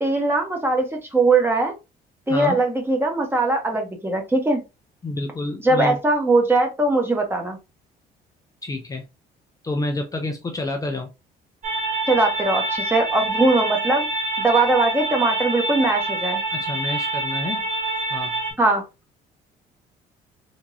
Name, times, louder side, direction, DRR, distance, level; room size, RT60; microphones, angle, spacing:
voice 1, 0.0-1.7 2.3-4.6 5.6-7.6 12.1-14.1 14.4-16.4 18.6-18.8, right 2 dB, 15° right, 3 dB, 1.1 m, -20 dB
voice 2, 2.3-2.6 5.0-6.0 8.6-9.0 9.6-11.1 16.5-17.7 18.1-18.4, left 2 dB, 20° left, 4 dB, 0.5 m, -28 dB
sound 1, 11.6-18.5, right 2 dB, 50° right, 1.3 m, -26 dB
3.5 x 2.9 x 2.7 m, 0.26 s
cardioid pair, 110°, 17 cm